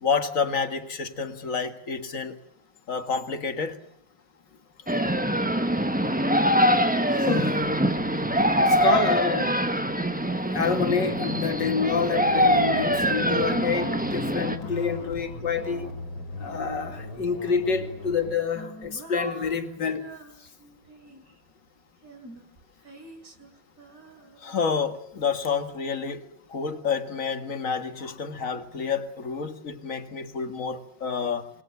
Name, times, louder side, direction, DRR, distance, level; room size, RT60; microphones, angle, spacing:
voice 1, 0.0-2.4 2.9-3.8 24.4-31.5, left 5 dB, 40° left, 8 dB, 2.2 m, -29 dB
sound 1, 4.9-14.6, equal, 5° right, 1.1 m, -24 dB
voice 2, 7.1-7.6 8.6-9.6 10.5-15.9 16.4-20.0, left 5 dB, 65° left, 6 dB, 3.0 m, -27 dB
sound 2, 7.6-18.4, left 2 dB, 80° left, 4.6 m, -40 dB
Female singing, 16.5-17.6 18.1-21.4 22.0-25.2, right 1 dB, 45° right, 4.1 m, -46 dB
27.0 x 21.0 x 8.2 m, 0.67 s
omnidirectional pair, 2.1 m